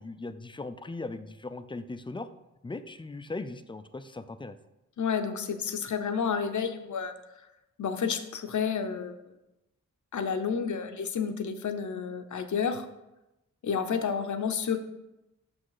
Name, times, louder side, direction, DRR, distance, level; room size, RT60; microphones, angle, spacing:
voice 1, 0.0-2.3 2.6-4.6, left 3 dB, 15° left, 11 dB, 0.4 m, -39 dB
voice 2, 5.0-7.1 7.8-9.2 10.1-12.9 13.6-14.8, left 6 dB, 70° left, 8 dB, 0.8 m, -30 dB
6.4 x 6.2 x 4.8 m, 0.95 s
wide cardioid pair, 100°, 31 cm